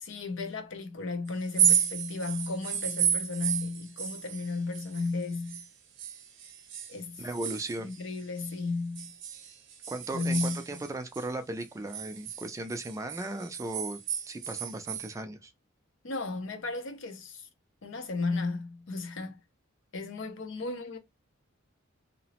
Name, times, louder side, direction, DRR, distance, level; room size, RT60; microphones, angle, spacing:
voice 1, 0.0-5.6 6.9-7.2 7.8-9.1 10.1-10.8 16.0-17.5 17.8-19.4 19.9-21.0, left 3 dB, 65° left, 0.6 m, -34 dB
sound 1, 1.4-5.7 6.0-8.5 9.0-11.3 11.6-15.1, right 8 dB, 65° right, 0.6 m, -32 dB
voice 2, 7.2-7.9 9.9-14.0 14.3-15.5, right 2 dB, 15° right, 0.3 m, -37 dB
2.8 x 2.0 x 2.8 m
head